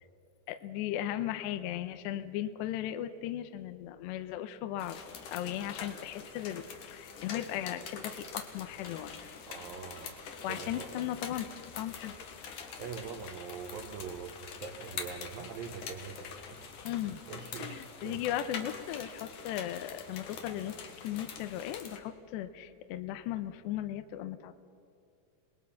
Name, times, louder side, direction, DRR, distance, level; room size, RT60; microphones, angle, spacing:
voice 1, 0.5-5.0 5.3-9.3 10.4-12.1 16.8-17.2 17.6-24.5, left 12 dB, 80° left, 9 dB, 2.6 m, -37 dB
sound 1, 4.8-22.0, left 6 dB, 60° left, 2.2 m, -45 dB
voice 2, 9.5-10.2 10.5-10.9 12.8-14.3 14.6-16.6 17.3-18.2, right 6 dB, 85° right, 2 dB, 2.0 m, -43 dB
27.0 x 20.5 x 5.8 m, 2.4 s
omnidirectional pair, 5.9 m